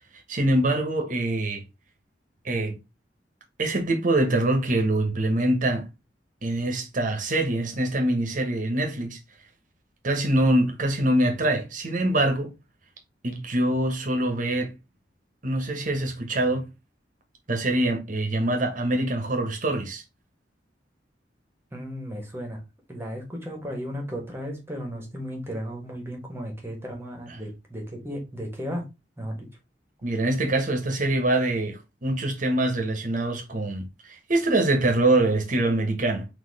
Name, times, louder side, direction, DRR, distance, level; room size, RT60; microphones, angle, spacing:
voice 1, 0.3-1.6 2.4-2.8 3.6-5.9 6.4-9.2 10.0-12.5 13.2-14.7 15.4-16.6 17.5-20.0 30.0-36.3, right 1 dB, 50° right, 1.1 m, -24 dB
voice 2, 21.7-22.6 22.9-28.9 29.2-29.5, equal, 15° right, 1.4 m, -35 dB
4.1 x 2.8 x 4.0 m
head